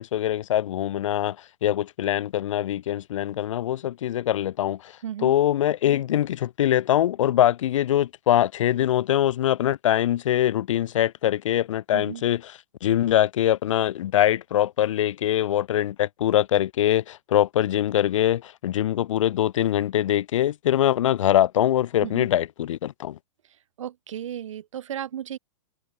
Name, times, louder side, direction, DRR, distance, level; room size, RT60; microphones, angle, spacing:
voice 1, 0.0-1.4 1.6-4.9 5.2-12.4 12.8-23.2, left 12 dB, 80° left, 0.6 m, -23 dB
voice 2, 5.0-5.3 11.9-12.2 22.0-22.3 23.8-25.4, right 10 dB, 75° right, 4.3 m, -34 dB
hypercardioid pair, 150°, 16 cm